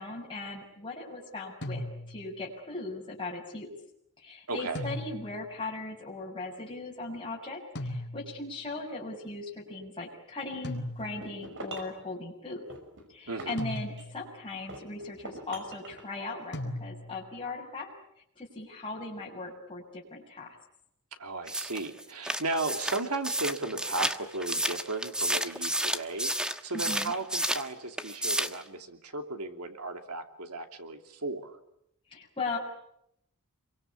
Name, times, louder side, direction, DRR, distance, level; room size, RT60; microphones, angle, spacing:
voice 1, 0.0-3.7 4.2-12.6 13.1-17.9 18.3-20.5 26.7-27.1 32.1-32.6, left 3 dB, 25° left, -3 dB, 6.7 m, -38 dB
sound 1, 1.6-2.4 4.7-5.5 7.8-8.5 10.6-11.4 13.6-14.3 16.5-17.3, left 1 dB, 50° left, 4.2 m, -38 dB
voice 2, 4.5-4.9 13.3-13.6 21.2-31.6, right 2 dB, 80° right, 5 dB, 3.0 m, -35 dB
sound 2, 11.0-12.0 12.7-14.2 14.7-16.1, right 2 dB, 55° right, 5.6 m, -44 dB
sound 3, 21.5-27.7 28.0-28.6, right 1 dB, 5° right, 1.2 m, -31 dB
28.5 x 23.5 x 8.6 m, 0.76 s
head